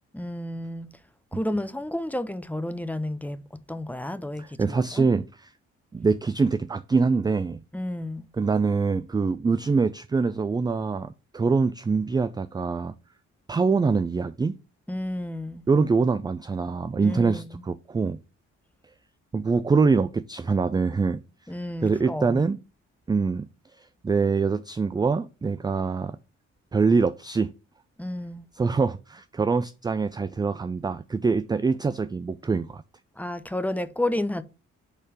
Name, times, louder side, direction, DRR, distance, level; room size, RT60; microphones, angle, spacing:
voice 1, 0.1-0.9 1.3-3.4 3.7-5.1 7.7-8.3 14.9-15.6 17.0-17.6 21.5-22.4 28.0-28.5 33.2-34.4, left 1 dB, 5° left, 0.7 m, -31 dB
voice 2, 4.4-5.2 5.9-7.6 8.4-12.9 13.5-14.6 15.7-18.2 19.3-21.2 21.8-22.6 23.1-23.5 23.8-26.2 26.7-27.5 28.6-32.8, right 4 dB, 15° right, 0.3 m, -24 dB
5.1 x 4.2 x 4.9 m
hypercardioid pair, 40°, 35 cm